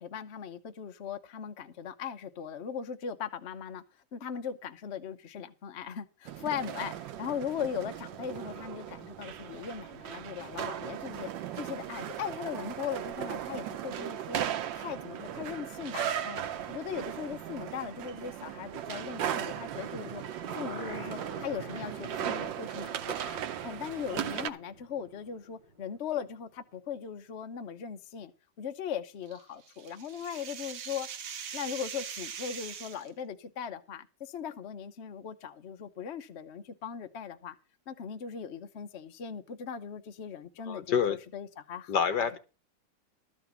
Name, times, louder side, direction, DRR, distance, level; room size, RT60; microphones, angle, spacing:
voice 1, 0.0-3.8 4.1-14.5 14.7-20.2 20.5-28.3 28.6-31.1 31.5-37.5 37.9-42.3, left 7 dB, 45° left, 1.0 m, -39 dB
sound 1, 6.2-24.5, right 10 dB, 90° right, 1.5 m, -37 dB
sound 2, 19.9-25.9 26.2-26.3, equal, 35° right, 5.0 m, -47 dB
sound 3, 29.3-33.1, right 7 dB, 55° right, 1.2 m, -42 dB
voice 2, 40.7-41.2 41.9-42.4, left 7 dB, 70° left, 1.8 m, -27 dB
13.0 x 5.0 x 8.1 m
omnidirectional pair, 2.0 m